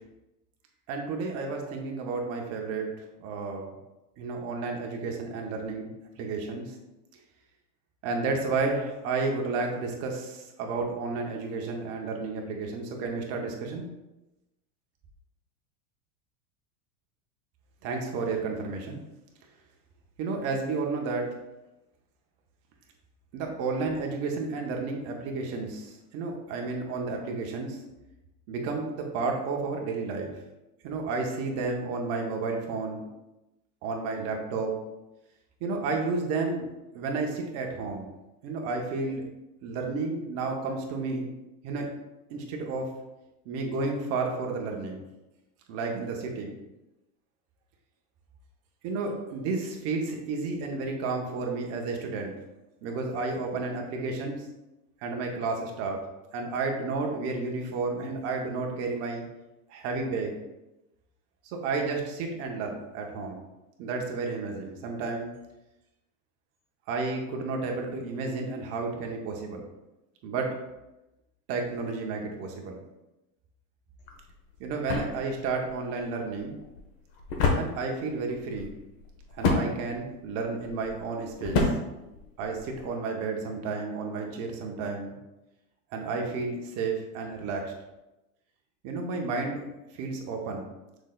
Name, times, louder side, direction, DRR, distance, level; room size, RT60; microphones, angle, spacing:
voice 1, 0.9-2.9 3.2-3.7 4.2-6.8 8.0-13.9 17.8-19.0 20.2-21.3 23.3-27.8 28.5-30.3 30.8-33.1 33.8-34.7 35.6-36.7 36.9-38.1 38.4-39.2 39.6-41.3 41.6-41.9 42.3-42.9 43.4-45.0 45.7-46.6 48.8-52.3 52.8-54.5 55.0-56.0 56.3-59.2 59.7-60.3 61.4-63.4 63.8-65.3 66.9-69.6 70.2-70.6 71.5-72.8 74.6-76.6 77.5-78.7 79.3-81.7 82.4-85.2 85.9-87.7 88.8-89.6 89.9-90.7, right 3 dB, 35° right, 1 dB, 0.8 m, -31 dB
sound 1, 74.0-82.9, left 3 dB, 45° left, 0.9 m, -31 dB
6.1 x 3.8 x 2.2 m, 0.97 s
supercardioid pair, 155°, 45 cm